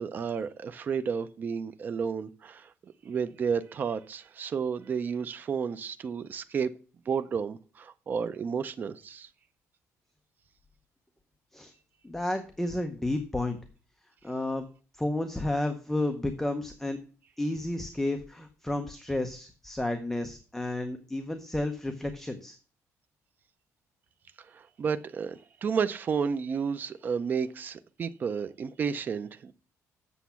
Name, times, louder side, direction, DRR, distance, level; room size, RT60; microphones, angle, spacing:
voice 1, 0.0-2.7 3.0-6.7 7.1-9.3 24.4-29.5, right 6 dB, 35° right, 0.5 m, -32 dB
voice 2, 12.0-13.6 14.2-14.6 15.0-17.0 17.4-22.6, left 1 dB, 5° left, 0.8 m, -31 dB
8.1 x 7.2 x 5.7 m
cardioid pair, 160°, 6 cm